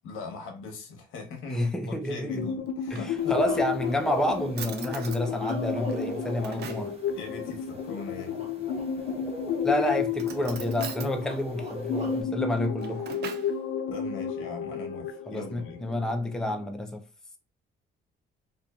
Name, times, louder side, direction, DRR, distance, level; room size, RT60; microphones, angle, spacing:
voice 1, 0.0-3.4 7.1-8.4 13.9-15.8, left 4 dB, 90° left, 0.8 m, -40 dB
voice 2, 1.5-2.5 2.9-7.0 9.6-13.1 15.3-17.0, left 1 dB, 5° left, 0.4 m, -29 dB
sound 1, 2.3-16.7, left 7 dB, 70° left, 0.4 m, -33 dB
Drawer open or close, 2.7-3.6 4.2-4.3 4.6-5.2 5.9-7.0 8.8-9.4 10.1-11.1 12.5-13.6, right 7 dB, 55° right, 0.5 m, -42 dB
sound 2, 3.2-12.2, equal, 30° right, 0.8 m, -41 dB
2.6 x 2.4 x 2.3 m
cardioid pair, 90°, 20 cm